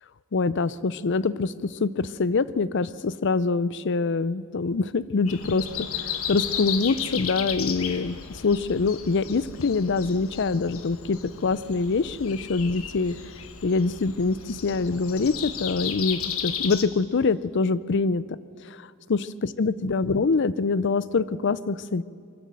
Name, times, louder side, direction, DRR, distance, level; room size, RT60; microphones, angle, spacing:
voice 1, 0.3-13.2 13.6-18.4 18.7-18.8 19.1-22.0, left 4 dB, 55° left, 17 dB, 0.5 m, -25 dB
Breathing, 5.3-16.8, left 8 dB, 75° left, 1.3 m, -34 dB
23.0 x 14.5 x 7.6 m, 2.3 s
head